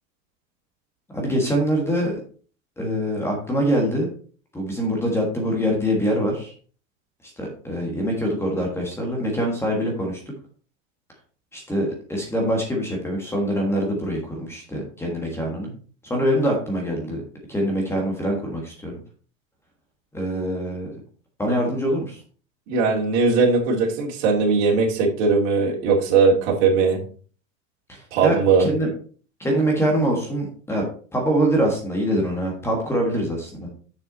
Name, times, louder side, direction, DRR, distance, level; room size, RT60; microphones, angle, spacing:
voice 1, 1.1-2.2 2.8-4.1 4.5-6.5 7.4-10.2 11.5-15.7 16.1-17.2 17.5-18.9 20.1-20.9 21.4-22.2 27.9-28.9 29.4-30.9 31.1-33.7, equal, 5° left, 0 dB, 1.5 m, -24 dB
voice 2, 22.7-27.0 28.1-28.7, right 4 dB, 55° right, -3 dB, 2.7 m, -19 dB
6.9 x 6.2 x 4.0 m, 0.41 s
supercardioid pair, 155°, 40 cm